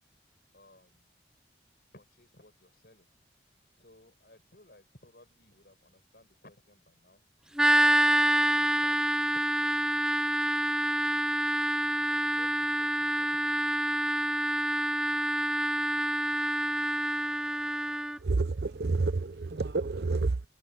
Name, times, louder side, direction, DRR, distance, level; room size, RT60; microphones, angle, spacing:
voice 1, 0.5-1.3 1.9-3.1 3.8-7.2 7.7-8.0 8.3-10.3 10.8-11.4 12.1-13.7, left 1 dB, 60° left, 5.9 m, -59 dB
sound 1, 7.6-18.2, right 1 dB, 5° right, 0.4 m, -27 dB
voice 2, 18.2-20.4, right 3 dB, 70° right, 0.7 m, -29 dB
head